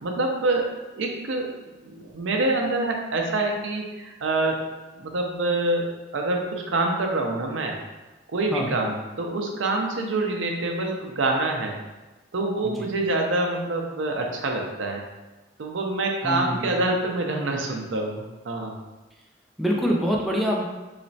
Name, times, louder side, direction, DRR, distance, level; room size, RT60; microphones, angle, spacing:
voice 1, 0.0-1.5 1.8-4.6 5.0-7.8 8.3-11.8 12.3-15.0 15.6-18.7, right 2 dB, 80° right, 2 dB, 0.5 m, -26 dB
voice 2, 16.2-16.8 19.6-20.6, equal, ahead, -3 dB, 0.4 m, -25 dB
3.2 x 3.0 x 2.7 m, 1.1 s
head